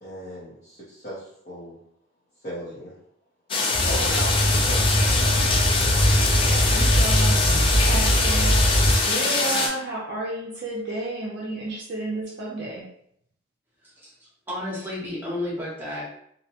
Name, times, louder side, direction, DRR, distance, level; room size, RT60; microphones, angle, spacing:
voice 1, 0.0-1.8 2.4-3.0 3.8-4.9, equal, 40° left, -9 dB, 0.7 m, -35 dB
sound 1, 3.5-9.7, left 3 dB, 25° left, 0.3 m, -23 dB
sound 2, 3.7-8.9, equal, 65° left, 0.8 m, -21 dB
voice 2, 6.4-12.8, right 2 dB, 55° right, -5 dB, 0.5 m, -32 dB
voice 3, 13.8-16.0, left 1 dB, 10° right, -6 dB, 0.8 m, -32 dB
2.6 x 2.1 x 2.8 m, 0.70 s
head